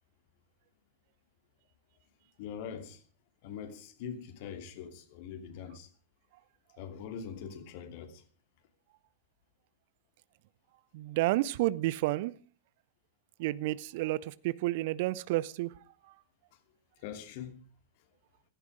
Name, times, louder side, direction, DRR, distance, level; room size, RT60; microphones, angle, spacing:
voice 1, 2.4-3.0 3.4-5.9 6.8-8.2 17.0-17.6, left 7 dB, 50° left, 2.8 m, -43 dB
voice 2, 10.9-12.3 13.4-15.7, right 17 dB, 50° right, 0.7 m, -30 dB
16.0 x 15.0 x 5.0 m
figure-of-eight pair, 90°, 0 cm